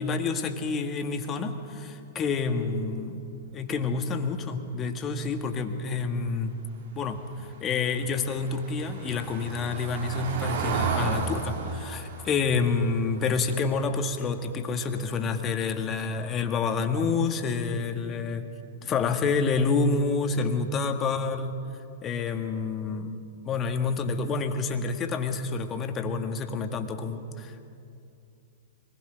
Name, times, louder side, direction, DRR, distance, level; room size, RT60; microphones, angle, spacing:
voice 1, 0.0-3.2 3.5-6.7 7.0-7.2 7.6-18.5 18.8-21.6 22.0-23.2 23.4-27.7, left 4 dB, 25° left, 5 dB, 1.8 m, -28 dB
Car passing by / Engine, 7.4-14.3 14.7-14.9 15.2-15.3, right 5 dB, 55° right, 2.9 m, -34 dB
25.0 x 20.0 x 6.4 m, 2.6 s
figure-of-eight pair, 105°, 0 cm